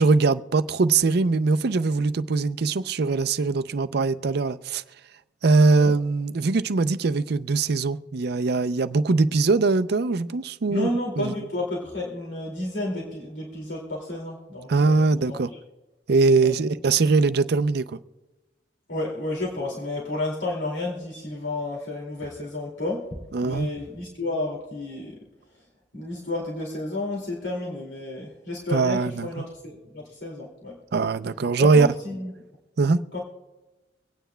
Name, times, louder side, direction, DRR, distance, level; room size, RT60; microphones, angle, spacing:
voice 1, 0.0-4.8 5.4-10.9 11.2-11.3 14.7-15.5 16.1-18.0 23.3-23.7 28.7-29.5 30.9-31.9 32.8-33.0, right 3 dB, 65° right, 0.5 m, -21 dB
voice 2, 10.7-15.0 15.3-15.4 16.4-16.5 18.9-23.0 23.4-25.1 25.9-30.7 31.6-32.3 33.1-33.2, left 2 dB, 75° left, 2.4 m, -31 dB
25.0 x 9.2 x 2.2 m
head